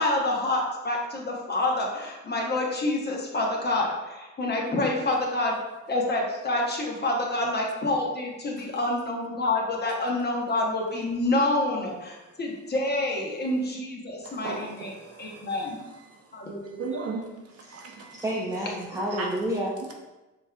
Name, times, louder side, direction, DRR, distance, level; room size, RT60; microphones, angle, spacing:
voice 1, 0.0-5.5 5.9-14.9 15.2-15.8 16.3-16.9, left 2 dB, 35° left, -1 dB, 1.0 m, -27 dB
voice 2, 14.2-15.6 16.8-17.3 17.5-18.2 19.1-19.3, right 4 dB, 50° right, 1 dB, 0.7 m, -36 dB
voice 3, 18.1-19.7, equal, 10° right, -4 dB, 0.6 m, -29 dB
5.3 x 3.1 x 2.3 m, 1.1 s
cardioid pair, 90°, 30 cm